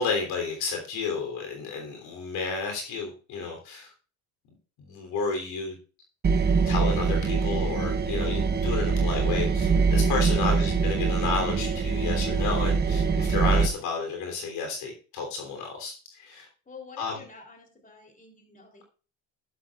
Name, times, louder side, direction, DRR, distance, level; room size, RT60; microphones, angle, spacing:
voice 1, 0.0-3.9 4.8-5.8 6.6-16.5 17.0-17.2, left 4 dB, 70° left, 3 dB, 3.4 m, -31 dB
sound 1, 6.2-13.7, right 5 dB, 25° right, 0.9 m, -24 dB
voice 2, 10.2-10.6 16.6-18.8, left 4 dB, 20° left, 3 dB, 3.4 m, -48 dB
12.0 x 11.5 x 2.5 m, 0.36 s
supercardioid pair, 90°, 38 cm